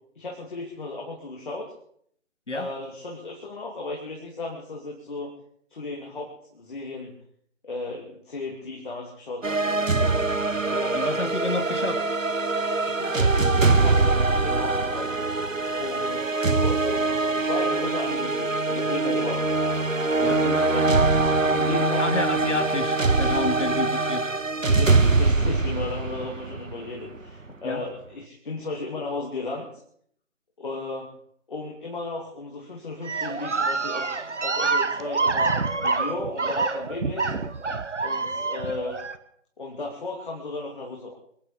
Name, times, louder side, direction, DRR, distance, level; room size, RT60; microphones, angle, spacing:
voice 1, 0.2-1.7 2.5-5.3 5.7-7.2 7.6-10.2 10.7-11.0 12.8-15.1 15.8-16.2 16.6-19.5 20.2-21.1 21.4-22.1 23.5-23.7 24.6-29.7 30.6-31.1 31.5-34.1 34.4-35.5 35.8-37.3 38.0-39.0 39.6-41.1, left 3 dB, 40° left, -1 dB, 3.0 m, -35 dB
sound 1, 9.4-27.1, right 3 dB, 90° right, 1.2 m, -23 dB
voice 2, 10.9-12.0 20.2-20.4 22.0-24.2 27.6-27.8, left 2 dB, 70° left, 8 dB, 2.7 m, -29 dB
sound 2, 33.0-39.2, right 4 dB, 65° right, 1.3 m, -27 dB
25.5 x 9.4 x 5.2 m, 0.66 s
figure-of-eight pair, 155°, 38 cm